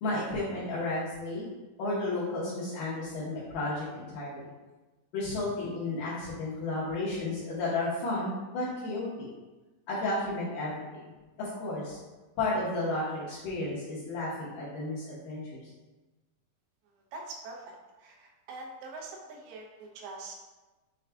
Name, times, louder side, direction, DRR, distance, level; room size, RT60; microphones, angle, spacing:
voice 1, 0.0-1.4 1.8-4.5 5.1-9.3 9.9-11.0 11.4-12.0 12.4-15.7, left 2 dB, 70° left, -9 dB, 2.2 m, -33 dB
voice 2, 17.1-20.3, right 3 dB, 80° right, 0 dB, 2.7 m, -44 dB
6.7 x 2.3 x 3.4 m, 1.2 s
omnidirectional pair, 4.4 m